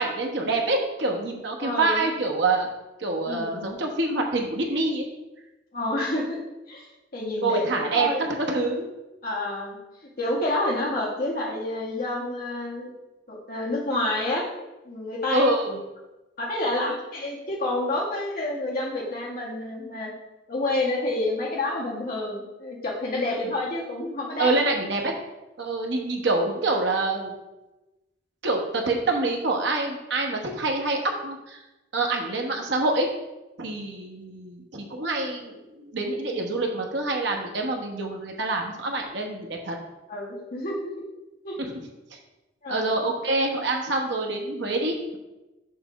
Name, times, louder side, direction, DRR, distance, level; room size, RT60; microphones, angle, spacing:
voice 1, 0.0-2.7 3.0-5.1 7.4-8.1 8.5-8.9 15.3-15.8 23.4-23.5 24.4-25.1 25.6-27.3 28.4-31.6 31.9-33.1 33.6-39.7 41.6-41.7 42.7-45.2, right 2 dB, 65° right, 1 dB, 1.0 m, -26 dB
voice 2, 1.6-2.0 3.2-3.6 5.7-6.4 6.7-8.2 9.2-9.8 10.2-13.0 13.3-14.4 14.8-15.5 16.4-20.1 20.5-24.5 40.1-40.8 41.4-41.6 42.6-42.8, left 1 dB, 50° left, -5 dB, 1.9 m, -28 dB
6.7 x 3.4 x 5.9 m, 1.0 s
head